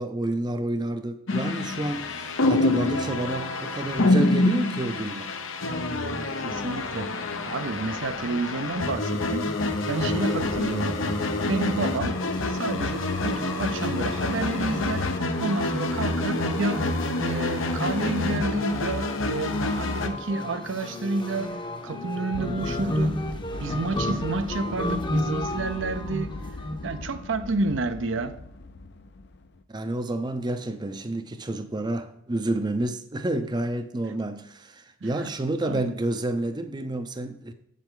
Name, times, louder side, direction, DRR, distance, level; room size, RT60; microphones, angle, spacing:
voice 1, 0.0-5.3 29.7-37.5, right 1 dB, 20° right, 0.5 m, -29 dB
sound 1, 1.3-20.1, left 2 dB, 90° left, 0.9 m, -27 dB
voice 2, 6.4-9.6 9.9-11.0 11.5-12.2 12.5-15.1 15.4-16.9 17.2-23.2 23.6-26.4 26.8-28.4 35.0-35.3 35.6-36.0, right 3 dB, 70° right, 0.6 m, -30 dB
sound 2, 9.5-27.3, left 1 dB, 25° left, 0.8 m, -34 dB
sound 3, 22.3-29.6, left 3 dB, 60° left, 0.6 m, -39 dB
8.0 x 7.5 x 3.8 m
head